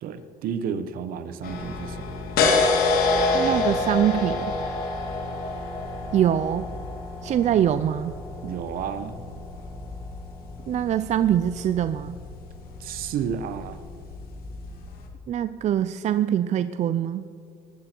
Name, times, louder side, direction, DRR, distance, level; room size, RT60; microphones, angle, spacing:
voice 1, 0.0-2.0 8.4-9.2 12.8-13.8, right 7 dB, 70° right, 11 dB, 1.1 m, -31 dB
sound 1, 1.4-15.1, left 3 dB, 70° left, 2.3 m, -28 dB
voice 2, 3.3-4.5 6.1-6.7 7.2-8.1 10.7-12.2 15.3-17.3, right 10 dB, 50° right, 12 dB, 0.5 m, -23 dB
20.0 x 12.0 x 4.6 m, 2.6 s
cardioid pair, 105°, 16 cm